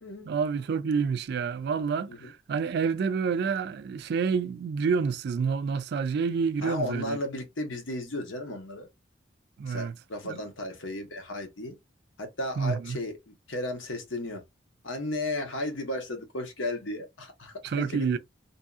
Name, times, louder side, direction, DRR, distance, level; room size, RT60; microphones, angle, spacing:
voice 1, 0.3-7.2 9.6-9.9 10.2-10.4 12.6-13.0 17.6-18.2, right 5 dB, 60° right, 0.3 m, -28 dB
voice 2, 6.6-8.9 9.7-11.8 12.2-14.4 14.8-18.2, left 1 dB, 85° left, 1.0 m, -34 dB
2.7 x 2.7 x 2.4 m
head